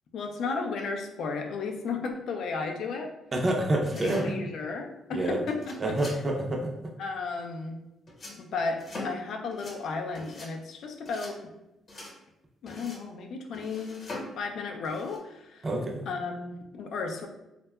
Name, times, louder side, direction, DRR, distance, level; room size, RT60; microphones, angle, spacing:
voice 1, 0.1-3.1 3.7-5.9 7.0-7.8 8.4-11.4 12.6-14.1 14.4-15.7 16.1-17.3, left 4 dB, 70° left, 3 dB, 0.4 m, -34 dB
voice 2, 3.3-4.3 5.1-5.4 5.8-6.7 15.6-16.1, right 1 dB, 30° right, 1 dB, 0.5 m, -27 dB
sound 1, 3.8-4.6 5.5-6.2 8.1-8.4 8.8-9.2 9.5-9.8 10.1-10.5 11.0-11.3 11.9-12.1 12.7-13.1 13.5-14.4 14.8-15.2, left 2 dB, 45° left, 0.9 m, -41 dB
2.7 x 2.2 x 2.2 m, 0.92 s
cardioid pair, 90°, 0 cm